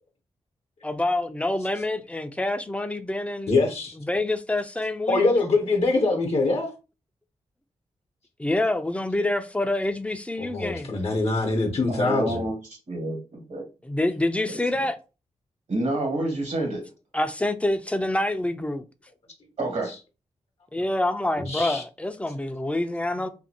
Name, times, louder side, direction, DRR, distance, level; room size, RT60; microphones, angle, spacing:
voice 1, 0.8-3.5 4.0-5.2 8.4-10.9 13.8-15.0 17.1-18.8 20.7-23.3, left 1 dB, 10° left, 0.5 m, -26 dB
voice 2, 3.5-4.0 5.1-6.7 10.4-12.4 21.4-21.8, left 3 dB, 55° left, 0.8 m, -23 dB
voice 3, 11.9-12.6 12.9-13.6 14.5-14.6 15.7-16.9 19.6-19.9, right 2 dB, 65° right, 1.4 m, -28 dB
2.7 x 2.6 x 2.7 m
supercardioid pair, 45°, 13 cm